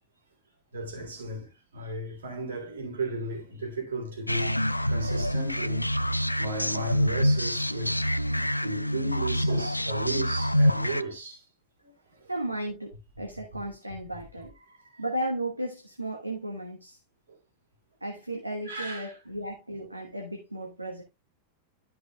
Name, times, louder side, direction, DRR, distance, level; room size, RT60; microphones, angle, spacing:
voice 1, 0.7-5.9 6.4-8.0 8.3-11.4 11.8-12.3 18.7-19.1, right 2 dB, 70° right, 3.6 m, -35 dB
sound 1, 4.3-11.0, equal, 85° left, 0.3 m, -26 dB
voice 2, 12.3-14.5 15.0-17.0 18.0-21.0, right 1 dB, 85° right, 1.4 m, -34 dB
13.0 x 5.8 x 2.3 m
figure-of-eight pair, 90°, 0 cm